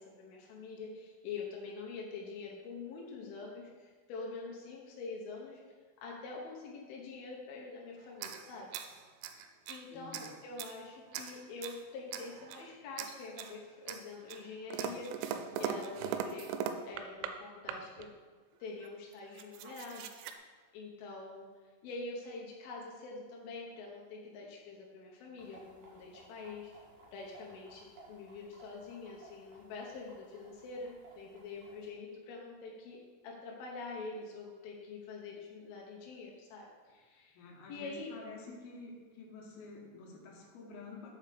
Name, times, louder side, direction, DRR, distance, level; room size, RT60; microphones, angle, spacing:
voice 1, 0.0-5.6 6.0-8.7 9.7-18.1 18.6-20.4 20.7-21.5 21.8-26.7 27.1-37.4 37.7-38.1, left 3 dB, 80° left, -2 dB, 2.1 m, -45 dB
sound 1, 8.1-9.8 10.1-10.8 11.1-11.8 12.1-12.7 13.0-13.6 13.9-17.4 17.7-18.1 18.8-18.9 19.1-20.3, right 8 dB, 90° right, 3.2 m, -40 dB
voice 2, 9.9-10.3 37.3-41.1, left 3 dB, 65° left, -2 dB, 2.7 m, -49 dB
sound 2, 25.4-31.9, right 2 dB, 60° right, 3.7 m, -59 dB
7.2 x 5.0 x 6.6 m, 1.5 s
omnidirectional pair, 5.7 m